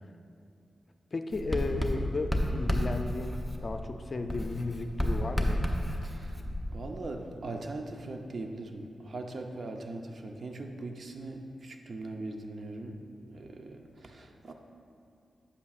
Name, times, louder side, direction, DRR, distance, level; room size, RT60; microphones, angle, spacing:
voice 1, 1.1-5.6, left 3 dB, 50° left, 7 dB, 0.5 m, -34 dB
Writing, 1.3-4.0 4.3-7.0, equal, 10° right, 0.8 m, -31 dB
voice 2, 6.0-6.4 6.7-14.5, right 2 dB, 60° right, 4 dB, 0.7 m, -40 dB
8.4 x 8.3 x 2.5 m, 2.6 s
cardioid pair, 55°, 0 cm